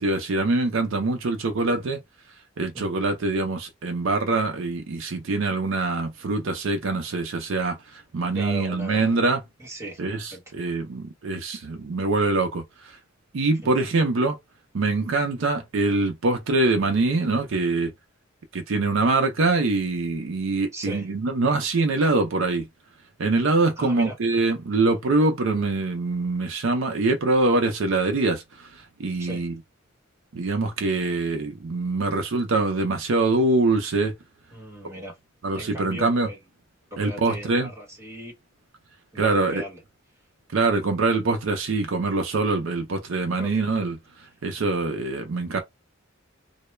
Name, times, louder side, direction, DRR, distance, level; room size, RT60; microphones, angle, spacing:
voice 1, 0.0-2.0 2.6-9.4 10.0-13.0 13.3-14.4 14.7-17.9 18.5-22.7 23.2-29.6 30.3-34.1 34.8-34.9 35.4-36.3 37.0-37.7 39.2-39.6 40.5-44.0 44.4-45.6, right 3 dB, 65° right, 0.5 m, -24 dB
voice 2, 8.3-9.2 9.6-10.0 10.3-10.4 13.6-13.7 20.7-21.1 23.8-24.1 29.2-29.4 34.5-35.2 35.5-36.4 36.9-38.3 39.1-39.8 43.4-43.8, right 1 dB, 15° right, 1.0 m, -38 dB
2.2 x 2.0 x 3.0 m
head